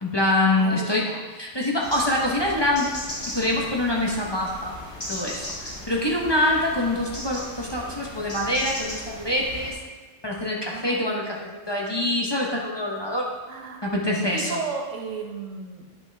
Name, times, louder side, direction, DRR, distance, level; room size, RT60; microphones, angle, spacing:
voice 1, 0.0-1.0 1.3-2.9 3.3-4.7 5.1-5.4 5.9-9.8 10.2-13.3 13.8-14.6, left 1 dB, 25° left, -3 dB, 0.9 m, -25 dB
voice 2, 0.5-1.3 10.6-11.3 13.5-13.9 14.3-15.9, right 4 dB, 80° right, 3 dB, 1.2 m, -34 dB
sound 1, 1.8-9.7, left 1 dB, 60° left, 3.0 m, -37 dB
9.5 x 5.9 x 3.4 m, 1.3 s
omnidirectional pair, 1.3 m